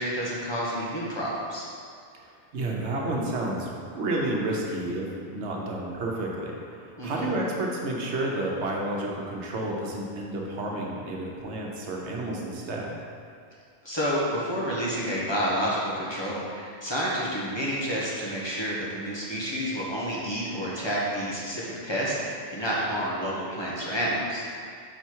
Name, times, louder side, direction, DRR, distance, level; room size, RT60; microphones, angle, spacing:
voice 1, 0.0-1.6 7.0-7.3 13.8-24.4, equal, 25° left, -7 dB, 1.1 m, -29 dB
voice 2, 2.2-6.6 7.0-12.9, right 2 dB, 85° right, -1 dB, 1.2 m, -30 dB
5.5 x 4.7 x 4.6 m, 2.3 s
omnidirectional pair, 1.1 m